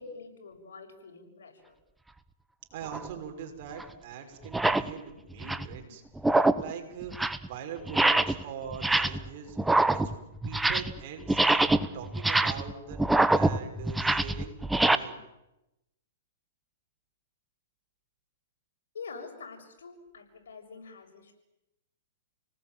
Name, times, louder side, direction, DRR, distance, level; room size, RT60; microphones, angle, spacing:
voice 1, 0.0-1.8 18.9-21.3, left 4 dB, 85° left, 5 dB, 6.9 m, -46 dB
voice 2, 2.7-6.0 6.3-9.6 9.9-10.1 10.4-13.0 13.3-15.2, right 7 dB, 50° right, 4 dB, 6.2 m, -42 dB
sound 1, 2.9-3.1 3.8-3.9 4.4-4.9 5.3-5.8 6.2-6.7 7.0-7.5 7.9-8.4 8.7-9.3 9.6-11.0 11.3-15.0, right 2 dB, 5° right, 1.0 m, -25 dB
30.0 x 19.0 x 9.3 m, 0.94 s
hypercardioid pair, 145°, 0 cm